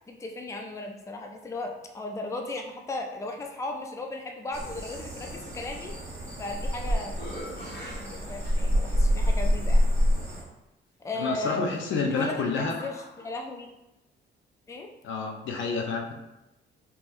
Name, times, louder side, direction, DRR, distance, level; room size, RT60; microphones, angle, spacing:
voice 1, 0.1-6.0 6.4-9.9 11.0-13.7 14.7-14.9, left 2 dB, 15° left, 3 dB, 0.4 m, -36 dB
sound 1, 4.5-10.4, equal, 15° right, 1.4 m, -27 dB
sound 2, 6.5-6.7 7.1-9.0 9.7-9.8 11.6-13.3, left 1 dB, 55° left, 1.5 m, -44 dB
voice 2, 11.1-12.8 15.0-16.1, left 4 dB, 75° left, 2 dB, 0.7 m, -29 dB
3.5 x 3.0 x 2.6 m, 0.94 s
cardioid pair, 90°, 20 cm